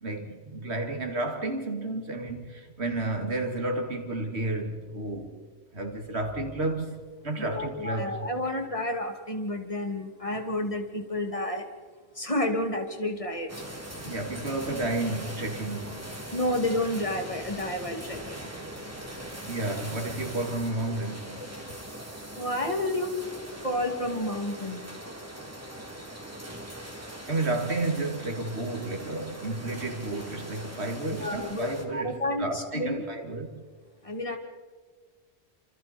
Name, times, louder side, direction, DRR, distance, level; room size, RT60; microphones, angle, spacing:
voice 1, 0.0-5.4 5.7-8.3 14.0-16.1 19.4-21.4 27.3-33.6, right 2 dB, 75° right, 2.6 m, -32 dB
voice 2, 7.4-11.6 12.1-13.5 16.3-18.4 22.3-23.1 23.6-24.9 31.1-33.0 34.0-34.4, left 1 dB, 30° left, 2.7 m, -30 dB
sound 1, 13.5-31.8, right 1 dB, 15° right, 2.8 m, -41 dB
29.5 x 27.0 x 4.4 m
omnidirectional pair, 1.1 m